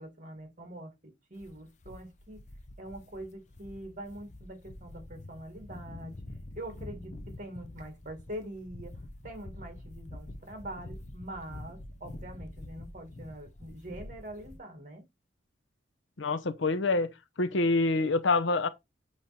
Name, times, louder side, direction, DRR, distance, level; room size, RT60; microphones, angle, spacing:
voice 1, 0.0-2.4 2.8-6.1 6.5-15.1, right 1 dB, 40° right, 2.2 m, -44 dB
sound 1, 1.4-14.6, left 1 dB, 40° left, 0.7 m, -46 dB
voice 2, 16.2-17.1 17.4-18.7, left 3 dB, 85° left, 0.8 m, -26 dB
8.7 x 3.2 x 4.2 m
head